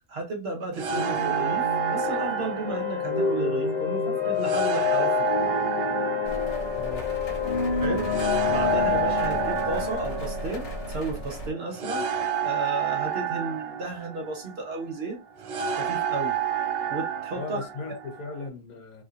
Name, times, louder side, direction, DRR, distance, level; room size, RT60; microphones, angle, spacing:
voice 1, 0.1-5.5 7.7-8.1 8.5-12.1 12.4-15.2 15.7-16.3 16.9-17.6, right 2 dB, 45° right, 1.1 m, -33 dB
sound 1, 0.7-18.5, right 8 dB, 75° right, 0.5 m, -30 dB
sound 2, 0.9-12.5, left 6 dB, 40° left, 1.1 m, -28 dB
sound 3, 6.2-11.5, equal, 60° left, 1.5 m, -37 dB
voice 2, 6.7-7.1 17.3-19.0, left 4 dB, 75° left, 1.3 m, -37 dB
3.2 x 2.7 x 2.5 m
omnidirectional pair, 1.6 m